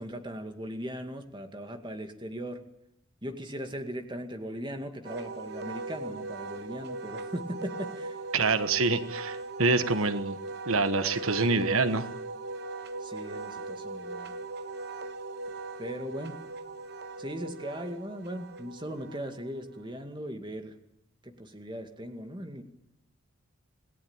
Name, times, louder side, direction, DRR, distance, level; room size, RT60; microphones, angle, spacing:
voice 1, 0.0-2.6 3.2-8.2 13.0-14.4 15.8-16.5 17.2-20.8 21.2-22.6, equal, 20° right, 6 dB, 2.2 m, -38 dB
Wind instrument woodwind instrument, 5.0-19.7, right 3 dB, 50° right, 1.2 m, -39 dB
voice 2, 8.3-10.4 10.7-12.1, right 3 dB, 75° right, 10 dB, 1.4 m, -26 dB
27.5 x 18.5 x 8.9 m, 0.81 s
head